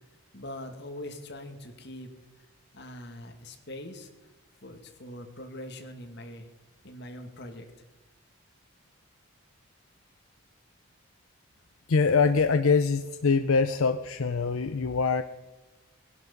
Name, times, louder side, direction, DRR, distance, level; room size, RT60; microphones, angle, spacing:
voice 1, 0.3-2.1 2.7-4.1 4.6-6.5 6.8-7.7, left 1 dB, 55° left, 4 dB, 2.1 m, -42 dB
voice 2, 11.9-15.2, left 5 dB, 75° left, 10 dB, 0.6 m, -24 dB
19.5 x 11.0 x 5.4 m, 1.2 s
head